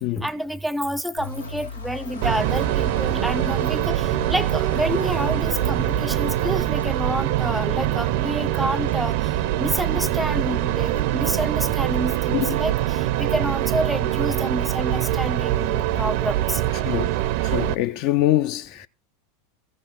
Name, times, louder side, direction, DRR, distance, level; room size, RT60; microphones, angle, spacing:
voice 1, 0.2-9.2 9.6-16.6, equal, 5° right, 0.5 m, -28 dB
sound 1, 1.2-6.7, left 3 dB, 80° left, 1.4 m, -36 dB
sound 2, 2.2-17.7, right 14 dB, 50° right, 0.5 m, -23 dB
sound 3, 5.3-12.2, right 4 dB, 80° right, 0.8 m, -42 dB
voice 2, 17.4-18.9, left 15 dB, 45° left, 0.4 m, -24 dB
15.0 x 6.1 x 4.2 m
figure-of-eight pair, 85°, 0 cm